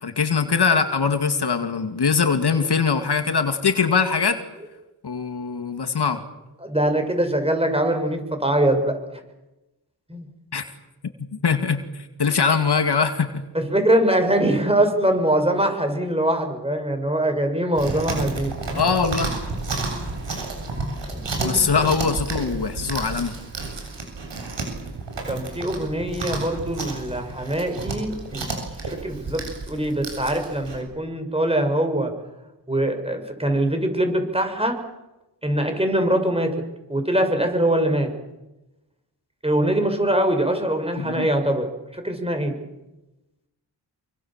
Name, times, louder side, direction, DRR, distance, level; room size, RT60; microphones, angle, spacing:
voice 1, 0.0-4.4 5.0-6.2 10.5-10.6 11.3-13.4 18.7-19.3 21.4-23.3 41.0-41.3, left 5 dB, 65° left, 7 dB, 2.4 m, -22 dB
voice 2, 6.6-8.9 10.1-10.3 13.5-18.9 21.1-21.6 25.3-28.6 28.8-32.1 32.7-34.8 35.4-36.5 36.9-38.1 39.4-41.7 41.9-42.5, right 1 dB, 15° right, 5 dB, 6.1 m, -23 dB
Chewing mastication, 17.7-30.8, right 3 dB, 90° right, 7.8 m, -31 dB
27.5 x 24.5 x 7.4 m, 1.0 s
wide cardioid pair, 85°, 42 cm